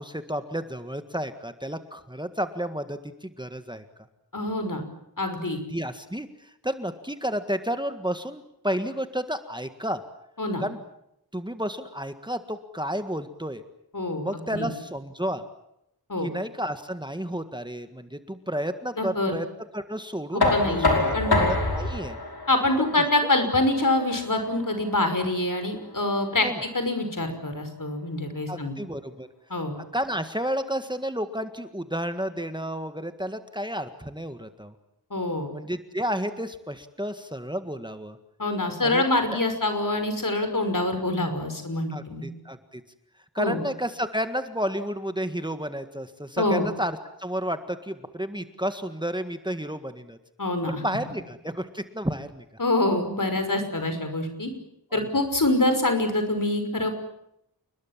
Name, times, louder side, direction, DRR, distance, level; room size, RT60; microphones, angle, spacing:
voice 1, 0.0-3.9 5.7-10.0 10.6-10.8 11.3-13.6 14.2-15.4 16.2-19.5 19.7-22.2 22.8-22.9 26.4-26.6 28.5-29.3 29.9-34.8 35.5-38.2 38.8-39.0 41.9-42.8 43.3-50.2 50.7-52.5 54.9-55.1, equal, 10° right, 9 dB, 1.8 m, -31 dB
voice 2, 4.3-4.8 5.2-5.6 10.4-10.6 13.9-14.3 14.5-14.7 16.1-16.3 19.0-19.3 20.3-21.4 22.5-26.5 26.7-28.7 29.5-29.7 35.1-35.5 38.4-42.3 43.4-43.6 46.4-46.6 50.4-50.8 52.6-54.5 54.9-56.9, left 2 dB, 60° left, 7 dB, 5.8 m, -25 dB
Knock, 20.4-26.2, left 2 dB, 85° left, 5.4 m, -27 dB
29.5 x 21.0 x 7.5 m, 0.80 s
wide cardioid pair, 65°, 36 cm